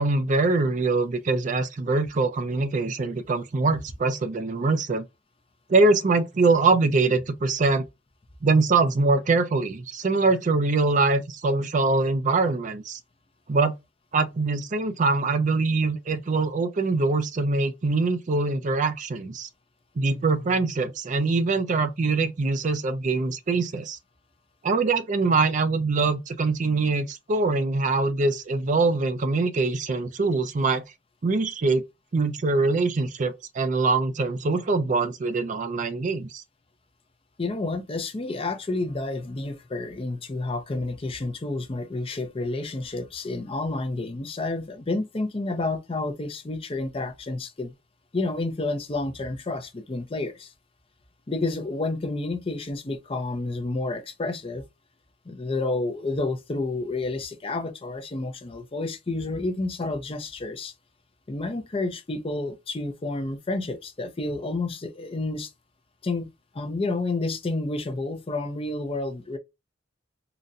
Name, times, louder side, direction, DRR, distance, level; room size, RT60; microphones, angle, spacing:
voice 1, 0.0-5.0 5.7-7.8 8.4-13.0 13.5-13.8 14.1-19.5 20.0-24.0 24.6-30.8 31.2-31.8 32.1-36.4, right 3 dB, 40° right, 0.4 m, -23 dB
voice 2, 37.4-47.7 48.1-50.5 51.3-54.6 55.3-60.7 61.3-65.5 66.0-69.4, left 2 dB, 30° left, 0.5 m, -30 dB
3.9 x 2.1 x 2.4 m
head